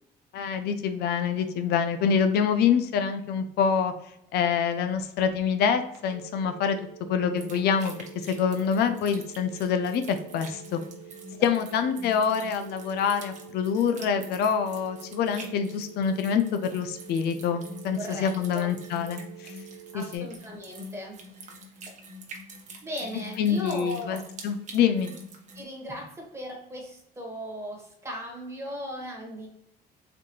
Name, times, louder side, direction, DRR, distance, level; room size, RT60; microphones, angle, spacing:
voice 1, 0.3-3.9 4.3-6.8 7.1-10.8 11.4-19.6 19.9-20.3 23.4-25.1, left 7 dB, 75° left, 8 dB, 0.5 m, -26 dB
sound 1, 5.9-20.2, right 13 dB, 70° right, 0.9 m, -48 dB
sound 2, 7.3-25.6, equal, 45° right, 0.9 m, -46 dB
voice 2, 18.0-18.7 19.7-21.6 22.8-24.3 25.5-29.5, equal, 15° right, -1 dB, 1.4 m, -38 dB
4.1 x 2.8 x 3.0 m, 0.76 s
cardioid pair, 110°, 17 cm